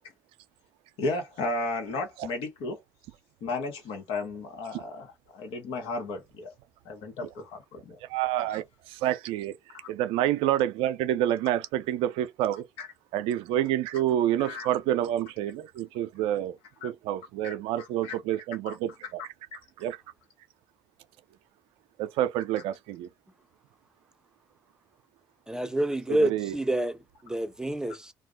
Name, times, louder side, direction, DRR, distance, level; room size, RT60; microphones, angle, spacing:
voice 1, 1.0-2.8 3.4-6.5 6.8-8.0 9.7-9.9 12.8-12.9 14.4-14.7 16.8-16.9 17.4-18.2 18.7-18.8 19.0-19.1, left 2 dB, 75° left, 1.1 m, -34 dB
voice 2, 8.1-9.6 9.9-12.7 13.1-16.6 16.8-19.2 19.8-20.0 22.0-23.1 26.1-26.6, right 12 dB, 75° right, 0.4 m, -28 dB
voice 3, 25.5-27.0 27.2-28.1, right 1 dB, 5° right, 0.6 m, -28 dB
2.3 x 2.1 x 3.6 m
hypercardioid pair, 55°, 9 cm